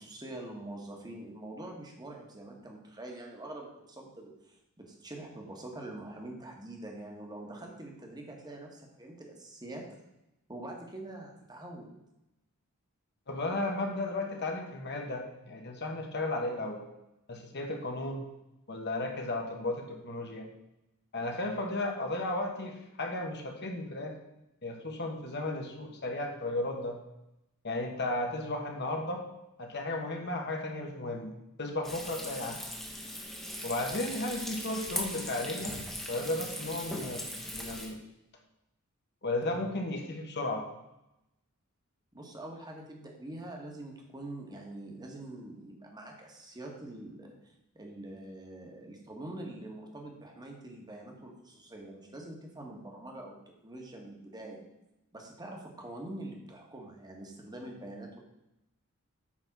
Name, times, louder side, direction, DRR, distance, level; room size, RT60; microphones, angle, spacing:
voice 1, 0.0-9.8 10.5-11.9 42.1-53.4 53.6-54.6 55.1-58.2, right 1 dB, 20° right, 1 dB, 1.5 m, -45 dB
voice 2, 13.3-16.8 17.3-18.3 18.7-20.5 21.1-24.1 24.6-27.0 27.6-29.2 29.6-31.3 31.6-32.6 33.6-35.8 36.1-37.2 37.5-38.0 39.2-40.6, left 2 dB, 50° left, 2 dB, 1.3 m, -34 dB
Frying (food), 31.8-37.9, equal, ahead, 1.1 m, -39 dB
8.7 x 3.9 x 6.0 m, 0.89 s
head